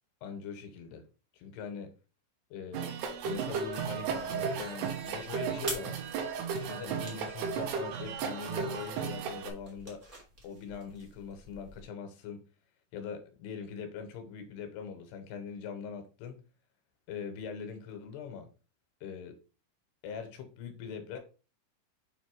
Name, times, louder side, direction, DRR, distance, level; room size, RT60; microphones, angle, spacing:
voice 1, 0.2-1.0 1.3-1.9 2.5-6.0 6.6-10.0 10.4-12.5 12.9-16.4 17.1-18.5 19.0-19.4 20.0-21.2, left 6 dB, 85° left, 3.1 m, -42 dB
sound 1, 2.7-9.5, right 6 dB, 85° right, 3.2 m, -35 dB
sound 2, 3.0-11.8, right 1 dB, 65° right, 0.7 m, -48 dB
7.3 x 3.2 x 4.7 m
omnidirectional pair, 4.7 m